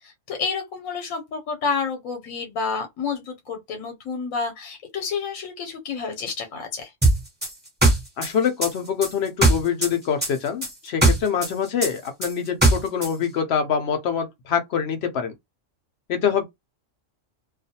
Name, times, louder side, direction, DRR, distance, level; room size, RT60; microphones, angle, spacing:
voice 1, 0.0-6.9, left 5 dB, 85° left, 1.1 m, -29 dB
sound 1, 7.0-9.9 10.2-13.1, right 2 dB, 10° right, 0.7 m, -19 dB
voice 2, 8.2-15.3 16.1-16.4, left 7 dB, 65° left, 0.7 m, -25 dB
2.4 x 2.3 x 2.6 m
omnidirectional pair, 1.4 m